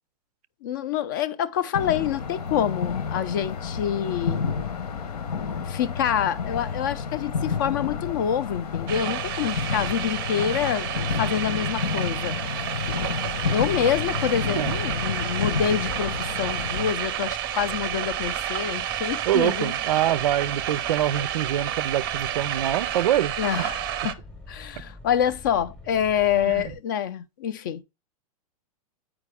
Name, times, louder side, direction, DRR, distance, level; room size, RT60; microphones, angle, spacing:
voice 1, 0.6-4.4 5.7-12.3 13.5-19.7 23.4-24.2 24.5-27.8, left 9 dB, 30° left, 0.4 m, -26 dB
sound 1, 1.7-16.9, left 6 dB, 85° left, 1.1 m, -30 dB
sound 2, 8.9-24.1, right 11 dB, 35° right, 0.5 m, -30 dB
sound 3, 13.0-26.7, left 1 dB, 5° left, 0.8 m, -45 dB
voice 2, 19.3-23.3 23.6-23.7 26.4-26.7, right 12 dB, 80° right, 0.5 m, -25 dB
8.5 x 4.9 x 3.4 m
supercardioid pair, 170°, 20 cm